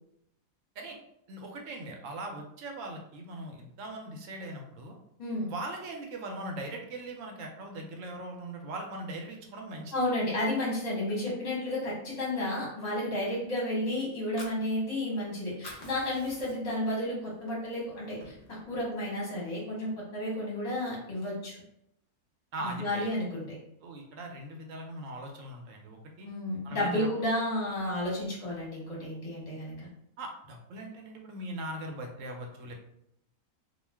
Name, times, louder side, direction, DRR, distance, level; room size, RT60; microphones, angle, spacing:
voice 1, 1.3-4.9 5.5-9.9 22.5-23.1 23.8-26.3 26.6-27.1 30.2-32.7, right 1 dB, 70° right, 2 dB, 0.9 m, -40 dB
voice 2, 9.9-18.3 18.7-21.6 22.6-23.6 26.2-29.9, left 1 dB, 35° left, -5 dB, 0.8 m, -32 dB
Fire, 14.1-15.3 15.5-16.9 17.3-17.4 17.8-18.8, left 1 dB, 65° left, 0.4 m, -47 dB
2.3 x 2.2 x 3.3 m, 0.78 s
omnidirectional pair, 1.5 m